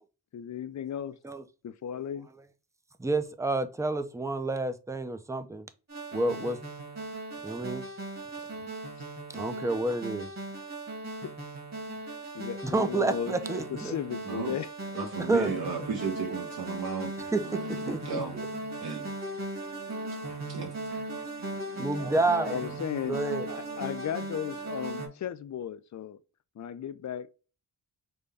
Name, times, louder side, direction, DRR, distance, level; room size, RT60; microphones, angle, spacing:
voice 1, 0.3-1.2 1.6-2.3 11.2-11.3 12.3-13.3 13.7-14.7 22.5-23.2 23.8-26.2 26.6-27.3, left 9 dB, 50° left, 0.4 m, -35 dB
voice 2, 3.0-5.7 6.1-6.6 7.4-7.8 9.3-10.3 12.6-13.9 15.3-15.5 17.3-17.6 17.9-18.2 21.8-22.7 23.1-23.6, right 2 dB, 10° right, 0.4 m, -29 dB
sound 1, 5.9-25.1, right 2 dB, 40° right, 1.9 m, -38 dB
voice 3, 14.2-14.6 14.9-17.1 17.4-18.4 18.8-19.1 20.3-21.1 21.4-21.6, right 5 dB, 70° right, 1.0 m, -35 dB
5.2 x 2.2 x 3.4 m
wide cardioid pair, 105°, 39 cm